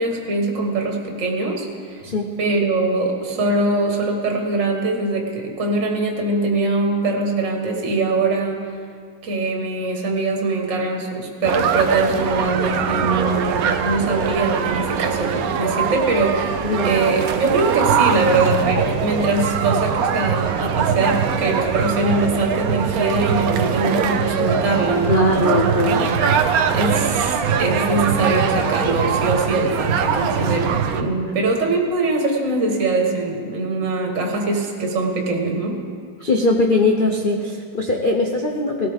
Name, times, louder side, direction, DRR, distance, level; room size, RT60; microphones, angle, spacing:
voice 1, 0.0-2.0 2.4-8.6 9.2-25.6 26.7-35.8, right 2 dB, 40° right, 1 dB, 1.6 m, -22 dB
voice 2, 2.0-2.3 16.6-17.0 25.1-26.2 36.2-38.9, left 2 dB, 85° left, 1 dB, 0.4 m, -20 dB
sound 1, 11.4-31.0, right 7 dB, 75° right, 0.8 m, -22 dB
18.0 x 13.0 x 3.6 m, 2.1 s
omnidirectional pair, 2.3 m